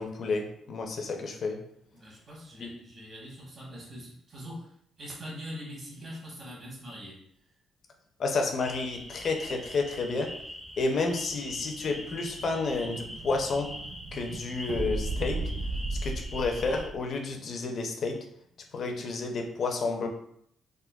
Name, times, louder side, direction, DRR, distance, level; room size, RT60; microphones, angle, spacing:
voice 1, 0.0-1.6 2.6-2.7 8.2-10.3 10.8-13.7 14.1-15.4 16.0-18.2 18.7-20.1, left 3 dB, 55° left, 3 dB, 0.5 m, -30 dB
voice 2, 1.9-4.7 5.0-7.2, equal, 50° right, -4 dB, 1.3 m, -43 dB
sound 1, 8.6-16.9, equal, 5° left, 0.5 m, -43 dB
Explosion, 11.2-17.0, right 2 dB, 70° right, 0.3 m, -36 dB
3.6 x 2.1 x 2.3 m, 0.69 s
cardioid pair, 90°, 0 cm